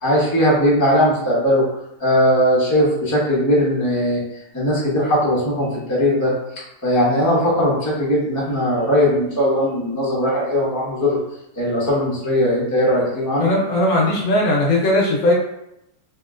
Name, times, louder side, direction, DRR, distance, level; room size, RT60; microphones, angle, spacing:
voice 1, 0.0-1.6 2.0-4.2 4.5-6.3 6.8-11.2 11.6-13.5, equal, 20° left, -6 dB, 0.5 m, -19 dB
voice 2, 13.4-15.3, left 1 dB, 65° left, -2 dB, 1.1 m, -18 dB
2.9 x 2.8 x 2.4 m, 0.81 s
omnidirectional pair, 1.8 m